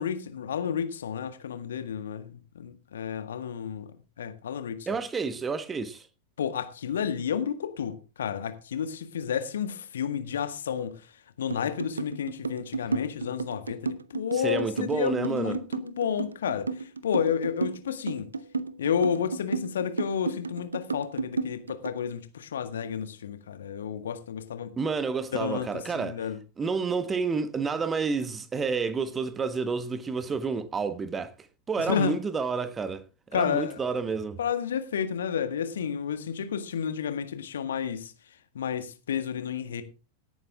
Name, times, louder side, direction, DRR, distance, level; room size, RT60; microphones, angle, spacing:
voice 1, 0.0-3.9 4.2-4.9 6.4-11.0 11.4-18.3 18.8-24.7 25.3-26.4 31.8-32.2 33.3-33.8 34.4-38.1 38.6-39.8, left 7 dB, 65° left, 1.7 m, -31 dB
voice 2, 4.9-6.1 14.4-15.6 24.8-26.2 26.6-31.3 31.7-33.0 33.3-34.4, right 5 dB, 20° right, 1.4 m, -29 dB
sound 1, 11.5-22.0, right 4 dB, 75° right, 0.9 m, -32 dB
18.0 x 9.2 x 3.6 m
figure-of-eight pair, 90°, 0 cm